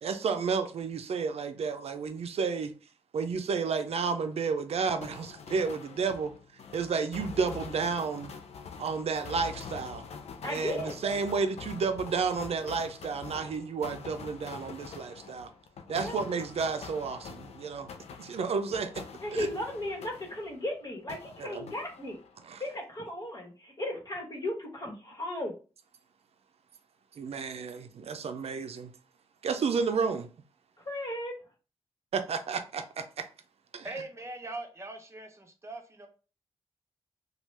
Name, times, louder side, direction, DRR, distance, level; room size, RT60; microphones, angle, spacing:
voice 1, 0.0-2.7 3.1-6.3 6.7-8.3 8.8-10.0 10.5-15.5 15.9-17.9 18.2-19.0 19.3-19.5 21.4-21.7 22.5-22.6 27.1-28.9 29.4-30.3 32.1-33.3 33.7-33.9, right 5 dB, 75° right, 0.4 m, -31 dB
sound 1, 5.0-20.7 21.1-22.4, left 6 dB, 85° left, 0.4 m, -45 dB
voice 2, 10.4-11.0 15.9-16.1 19.2-22.2 22.6-25.6 30.8-31.4, left 1 dB, 40° left, 1.3 m, -35 dB
voice 3, 33.8-36.1, right 2 dB, 25° right, 0.8 m, -41 dB
2.9 x 2.3 x 3.2 m
cardioid pair, 60°, 11 cm